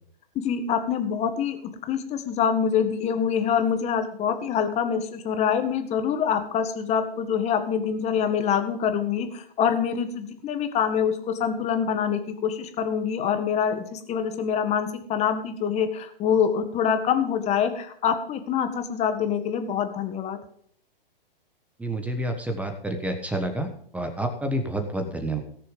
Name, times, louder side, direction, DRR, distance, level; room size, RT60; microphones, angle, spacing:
voice 1, 0.4-1.6 1.9-20.4, left 7 dB, 20° left, 8 dB, 1.7 m, -25 dB
voice 2, 21.8-25.4, right 1 dB, 5° right, 5 dB, 1.3 m, -29 dB
18.0 x 6.9 x 5.1 m, 0.64 s
hypercardioid pair, 130°, 29 cm